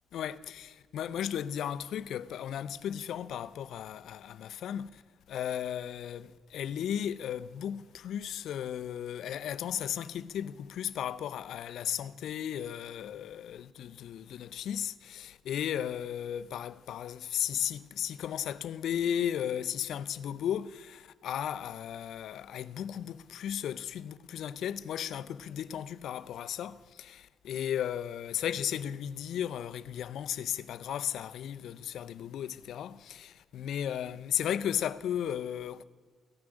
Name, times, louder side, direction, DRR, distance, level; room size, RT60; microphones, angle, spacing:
voice 1, 0.1-5.0 5.3-35.8, left 10 dB, 75° left, 0.5 m, -35 dB
15.5 x 6.1 x 9.9 m
cardioid pair, 90°, 0 cm